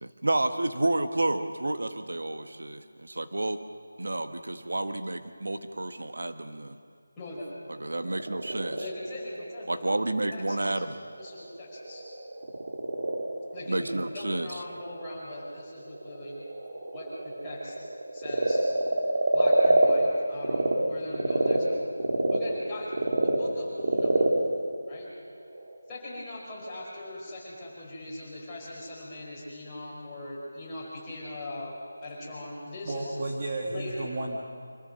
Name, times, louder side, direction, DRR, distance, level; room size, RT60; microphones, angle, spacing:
voice 1, 0.0-3.6 4.0-6.8 7.8-8.8 9.7-11.0 13.7-14.5, right 2 dB, 85° right, 8 dB, 1.3 m, -30 dB
voice 2, 7.2-7.5 8.8-10.8 11.2-12.0 13.5-13.9 14.1-16.3 16.9-17.8 18.1-18.6 19.3-21.8 22.3-22.9 23.2-24.2 24.9-25.1 25.9-33.2 33.6-34.0, left 1 dB, 10° left, -8 dB, 5.1 m, -40 dB
Frog, 8.0-20.7 21.1-25.8, right 2 dB, 50° right, 2.6 m, -28 dB
voice 3, 32.8-34.4, right 2 dB, 30° right, -1 dB, 1.7 m, -32 dB
25.5 x 15.0 x 6.8 m, 2.1 s
figure-of-eight pair, 175°, 0 cm